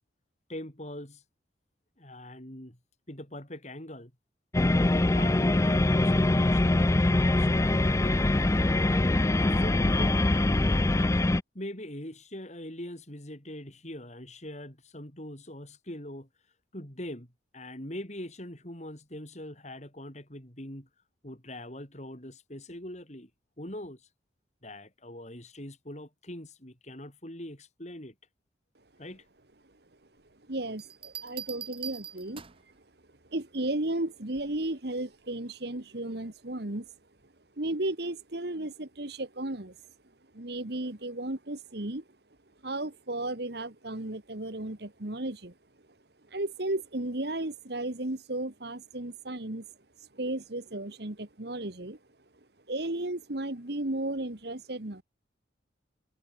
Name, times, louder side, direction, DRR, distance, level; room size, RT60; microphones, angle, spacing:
voice 1, 0.5-1.2 2.0-2.8 3.1-4.1 4.9-8.5 9.3-11.1 11.5-16.3 16.7-20.9 21.2-23.3 23.6-24.0 24.6-28.1 29.0-29.2, left 1 dB, 40° left, 5.1 m, -42 dB
sound 1, 4.5-11.4, left 2 dB, 15° left, 0.4 m, -23 dB
voice 2, 30.5-32.4 33.3-36.9 37.6-39.8 40.3-42.0 42.6-45.5 46.3-49.7 50.1-52.0 52.7-55.0, right 1 dB, 60° right, 1.8 m, -34 dB
sound 2, 30.8-32.7 34.4-34.7, right 8 dB, 30° right, 1.1 m, -42 dB
head